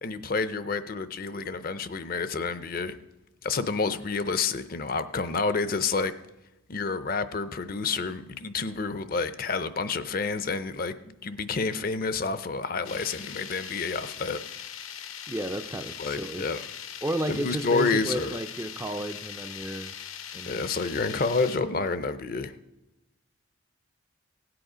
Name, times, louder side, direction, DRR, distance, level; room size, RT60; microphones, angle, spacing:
voice 1, 0.0-3.0 3.4-6.1 6.7-14.4 16.0-16.6 17.3-18.4 20.5-22.6, left 4 dB, 45° left, 12 dB, 0.5 m, -29 dB
sound 1, 12.8-21.6, left 9 dB, 75° left, 0.8 m, -40 dB
voice 2, 15.3-16.5 17.0-20.0 20.3-20.7, right 1 dB, 15° right, 8 dB, 0.4 m, -32 dB
17.0 x 7.9 x 5.0 m, 0.99 s
head